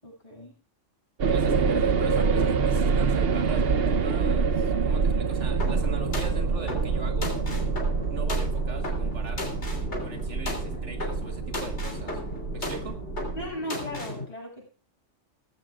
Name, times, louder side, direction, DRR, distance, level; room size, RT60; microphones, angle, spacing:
voice 1, 0.0-0.6 13.3-14.8, equal, 30° left, -3 dB, 7.2 m, -37 dB
sound 1, 1.2-13.5, right 5 dB, 55° right, 1.0 m, -26 dB
voice 2, 1.3-7.3 8.1-9.6 10.0-12.2 12.5-13.0, right 4 dB, 70° right, 5 dB, 1.9 m, -41 dB
sound 2, 5.6-14.2, left 2 dB, 65° left, 3.5 m, -36 dB
18.5 x 15.0 x 2.4 m, 0.36 s
omnidirectional pair, 1.3 m